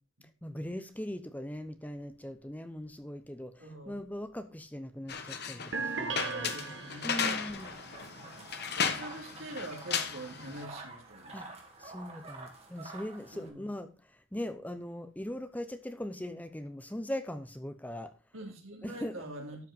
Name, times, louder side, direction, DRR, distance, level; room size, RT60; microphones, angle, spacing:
voice 1, 0.4-6.5 7.0-7.8 11.3-11.5 11.8-18.1 18.8-19.2, left 1 dB, 10° left, 0.7 m, -40 dB
voice 2, 3.6-4.0 6.3-7.4 8.7-11.5 13.3-13.6 18.3-19.6, right 1 dB, 80° right, 3.5 m, -44 dB
sound 1, 5.1-10.6, left 6 dB, 50° left, 1.2 m, -35 dB
sound 2, 5.7-7.5, right 4 dB, 65° right, 1.2 m, -37 dB
sound 3, 7.5-13.5, right 3 dB, 30° right, 2.4 m, -49 dB
12.5 x 5.4 x 5.4 m
head